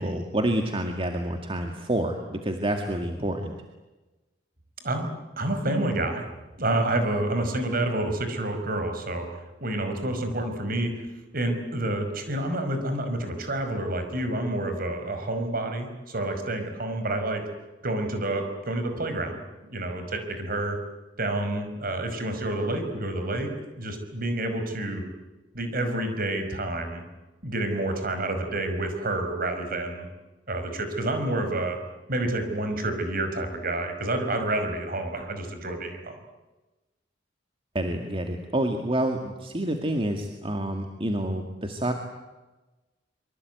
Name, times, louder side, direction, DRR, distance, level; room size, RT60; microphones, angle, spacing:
voice 1, 0.0-3.5 37.7-41.9, right 1 dB, 30° right, 4 dB, 2.2 m, -28 dB
voice 2, 5.4-6.3 6.6-9.3 9.6-10.9 11.3-17.4 17.8-20.8 21.2-23.5 23.8-25.0 25.5-27.0 27.4-30.1 30.5-31.8 32.1-36.1, right 1 dB, 55° right, 7 dB, 5.4 m, -28 dB
25.5 x 24.0 x 9.5 m, 1.1 s
head